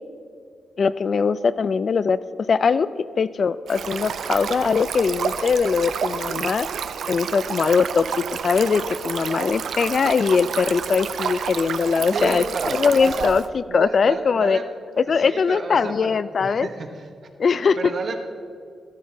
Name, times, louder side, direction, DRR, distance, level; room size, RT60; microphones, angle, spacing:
voice 1, 0.8-2.2 2.5-2.9 3.2-6.7 7.1-14.6 15.0-16.7 17.4-17.9, left 5 dB, 50° left, 15 dB, 0.4 m, -21 dB
Stream, 3.7-13.5, right 7 dB, 75° right, 0.4 m, -30 dB
voice 2, 12.1-13.3 13.7-14.6 15.2-16.9 17.8-18.2, right 4 dB, 55° right, 4 dB, 1.1 m, -30 dB
13.5 x 13.0 x 2.8 m, 2.2 s
cardioid pair, 105°, 0 cm